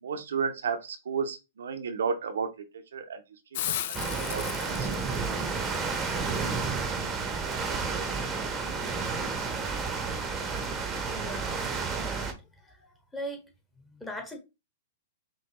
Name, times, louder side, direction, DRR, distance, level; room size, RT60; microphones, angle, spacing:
voice 1, 0.0-3.2 3.5-3.7 4.1-5.2, right 5 dB, 75° right, 0.7 m, -33 dB
Hiss, 3.5-9.2, left 12 dB, 55° left, 0.4 m, -40 dB
sound 1, 3.9-12.3, right 4 dB, 20° right, 0.9 m, -31 dB
voice 2, 11.1-11.6 11.9-12.3 12.6-12.9 13.1-13.5 13.8-14.4, right 1 dB, 10° left, 1.4 m, -39 dB
5.3 x 2.8 x 2.9 m
hypercardioid pair, 115°, 0 cm